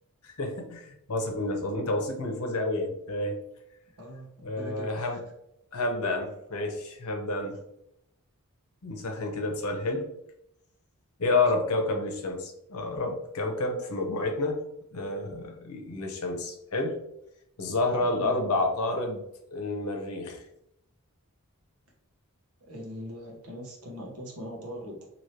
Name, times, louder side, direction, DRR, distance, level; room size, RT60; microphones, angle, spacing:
voice 1, 0.2-3.4 4.4-5.2 5.7-7.6 8.8-10.1 11.2-14.6 14.9-17.0 17.6-19.2 19.5-20.4, left 2 dB, 75° left, 2 dB, 0.7 m, -29 dB
voice 2, 4.0-4.3 4.6-5.2 11.2-11.5 18.0-18.3 22.7-25.1, equal, 70° right, -2 dB, 1.0 m, -41 dB
3.1 x 2.8 x 2.8 m, 0.79 s
head